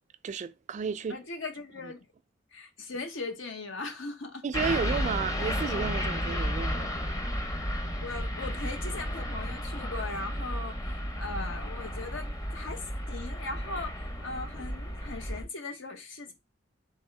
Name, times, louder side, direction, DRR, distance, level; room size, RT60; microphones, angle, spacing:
voice 1, 0.2-1.2 4.4-6.9, right 6 dB, 40° right, 0.3 m, -32 dB
voice 2, 1.1-2.0 2.5-5.3 8.0-16.3, left 3 dB, 80° left, 1.0 m, -39 dB
sound 1, 4.5-15.4, equal, 20° left, 0.7 m, -33 dB
3.6 x 3.5 x 3.2 m
head